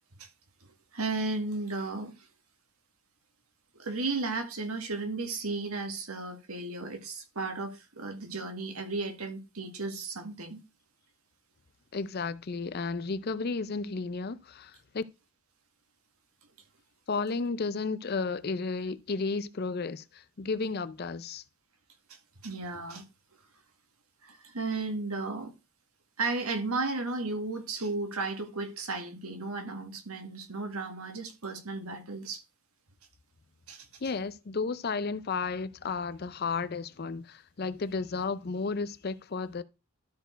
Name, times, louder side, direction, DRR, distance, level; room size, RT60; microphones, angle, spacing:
voice 1, 0.9-2.1 3.7-10.6 22.1-22.2 22.4-23.0 24.2-25.5 26.2-32.4 33.7-33.9, right 3 dB, 85° right, 1.7 m, -34 dB
voice 2, 11.9-15.0 17.1-21.4 34.0-39.6, left 4 dB, 45° left, 0.5 m, -33 dB
12.0 x 4.5 x 4.5 m
head